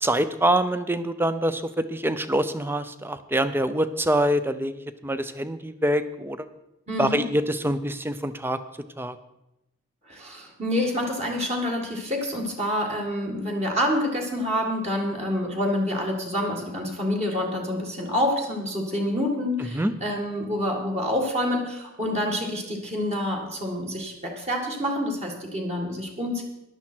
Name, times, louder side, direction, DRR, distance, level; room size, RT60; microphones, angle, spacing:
voice 1, 0.0-6.5 7.0-8.6 9.0-9.2 19.7-19.9, right 1 dB, 10° right, 12 dB, 0.5 m, -25 dB
voice 2, 6.9-7.2 10.1-26.4, left 1 dB, 30° right, 0 dB, 1.9 m, -27 dB
14.5 x 11.0 x 4.5 m, 0.92 s
head